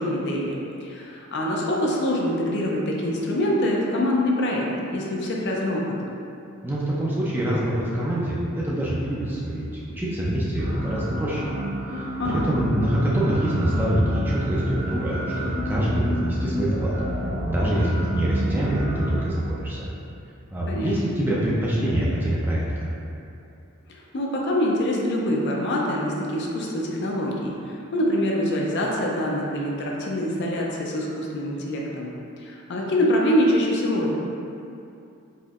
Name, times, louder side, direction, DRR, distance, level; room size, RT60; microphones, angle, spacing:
voice 1, 0.0-5.8 12.2-12.4 20.6-20.9 24.1-32.1 32.4-34.2, left 1 dB, 50° left, -2 dB, 0.5 m, -25 dB
voice 2, 6.6-11.4 11.9-16.9 17.5-19.8 20.5-22.8, right 1 dB, 10° right, -6 dB, 0.4 m, -25 dB
sound 1, 10.6-19.2, equal, 70° right, 0.9 m, -30 dB
4.2 x 3.0 x 2.4 m, 2.6 s
head